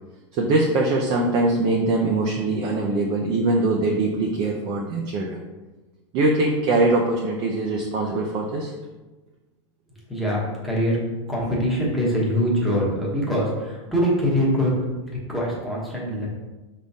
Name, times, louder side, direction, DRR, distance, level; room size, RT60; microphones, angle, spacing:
voice 1, 0.3-5.4 6.1-8.7, right 2 dB, 35° right, -1 dB, 0.5 m, -22 dB
voice 2, 10.1-11.0 11.3-14.7 15.1-16.3, equal, ahead, -5 dB, 1.0 m, -23 dB
4.9 x 3.6 x 2.7 m, 1.2 s
supercardioid pair, 155°, 16 cm